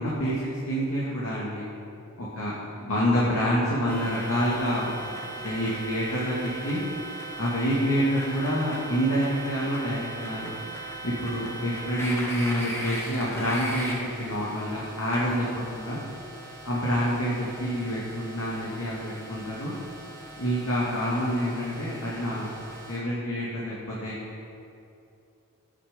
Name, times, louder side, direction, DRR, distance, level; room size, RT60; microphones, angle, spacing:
voice 1, 0.0-1.6 2.4-2.5 2.8-6.8 7.4-10.6 11.0-16.0 16.7-19.7 20.4-22.5 22.9-24.1, equal, 80° left, -7 dB, 2.1 m, -27 dB
sound 1, 3.9-23.0, right 1 dB, 10° left, 1.5 m, -39 dB
12.0 x 9.9 x 5.2 m, 2.6 s
head